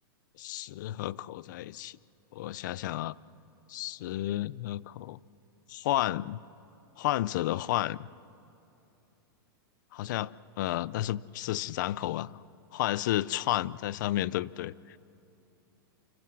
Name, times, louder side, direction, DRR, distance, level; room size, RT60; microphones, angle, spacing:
voice 1, 0.4-2.0 2.3-3.1 3.7-5.2 5.7-6.4 7.0-8.1 9.9-10.3 10.6-12.3 12.7-15.0, left 14 dB, 55° left, 20 dB, 0.5 m, -31 dB
28.5 x 26.5 x 6.2 m, 2.8 s
supercardioid pair, 160°, 12 cm